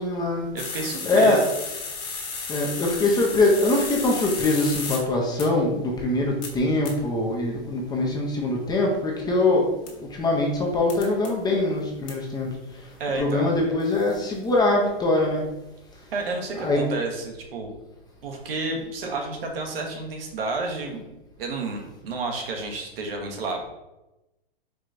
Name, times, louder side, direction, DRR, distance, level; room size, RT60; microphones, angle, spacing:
voice 1, 0.0-0.5 1.0-1.5 2.5-12.9 13.2-15.4 16.6-16.8, left 2 dB, 15° left, -1 dB, 0.6 m, -23 dB
voice 2, 0.5-1.5 13.0-13.6 16.1-17.7 18.2-21.0 21.4-23.7, right 3 dB, 70° right, 2 dB, 1.1 m, -30 dB
sound 1, 0.6-5.0 5.4-5.5 6.4-6.5 6.9-7.0 9.9-10.0 10.9-11.3 12.1-12.2 13.8-14.2, left 5 dB, 45° left, 1.3 m, -33 dB
4.7 x 3.1 x 2.5 m, 0.97 s
hypercardioid pair, 125°, 30 cm